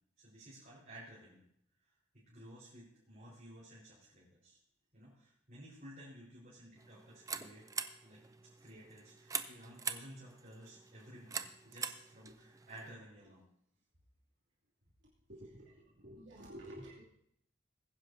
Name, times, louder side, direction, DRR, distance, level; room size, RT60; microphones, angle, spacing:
voice 1, 0.2-1.4 1.8-4.6 4.9-7.7 8.0-8.2 8.6-11.4 11.6-13.5 15.4-15.7 16.6-16.8, right 1 dB, 45° right, -9 dB, 4.4 m, -55 dB
sound 1, 6.8-12.9, right 6 dB, 15° right, 0.4 m, -44 dB
voice 2, 15.3-15.7 16.0-17.0, equal, 65° right, -7 dB, 2.7 m, -50 dB
21.0 x 10.5 x 2.7 m, 0.71 s
head